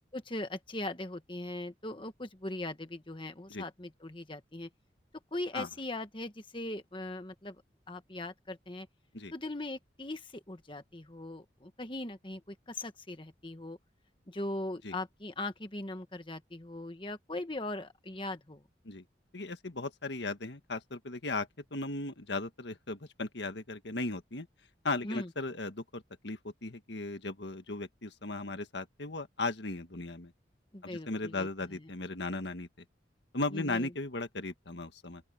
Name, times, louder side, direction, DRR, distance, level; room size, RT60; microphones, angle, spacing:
voice 1, 0.1-4.7 5.3-7.6 7.9-8.9 9.3-13.8 14.3-18.6 25.0-25.3 30.7-31.5 33.5-33.9, left 2 dB, 30° left, 1.4 m, -40 dB
voice 2, 19.3-24.5 24.8-30.3 30.8-32.7 33.3-35.2, left 2 dB, 75° left, 1.6 m, -37 dB
open air
head